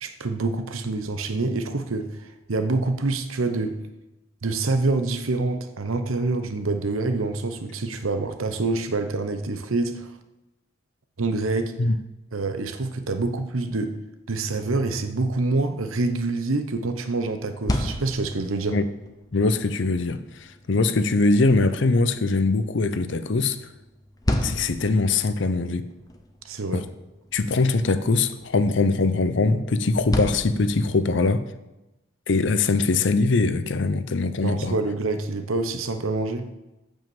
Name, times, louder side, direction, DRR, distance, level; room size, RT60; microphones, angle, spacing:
voice 1, 0.0-3.8 4.4-10.1 11.2-11.7 12.3-14.0 14.3-18.8 26.4-26.8 34.4-36.5, right 3 dB, 80° right, 9 dB, 0.9 m, -26 dB
sound 1, 17.4-31.3, left 1 dB, 15° left, 0.7 m, -35 dB
voice 2, 19.3-23.6 24.4-25.9 26.7-26.8 27.3-31.4 32.3-34.8, left 3 dB, 60° left, 12 dB, 0.6 m, -22 dB
9.1 x 5.5 x 7.2 m, 1.0 s
head